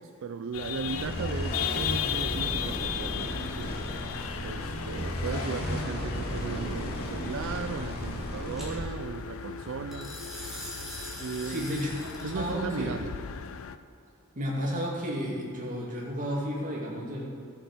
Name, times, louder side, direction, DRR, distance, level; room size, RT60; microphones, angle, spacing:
voice 1, 0.0-3.7 4.4-10.2 11.2-11.7 12.2-13.1, right 5 dB, 60° right, 8 dB, 0.4 m, -37 dB
sound 1, 0.5-13.8, left 8 dB, 65° left, 0.5 m, -37 dB
sound 2, 0.8-8.8, left 1 dB, 45° left, 2.2 m, -34 dB
sound 3, 8.6-8.7 9.9-12.4, equal, ahead, 2.8 m, -42 dB
voice 2, 11.5-12.9 14.3-17.3, equal, 40° right, -4 dB, 2.5 m, -32 dB
13.5 x 7.3 x 5.3 m, 2.4 s
head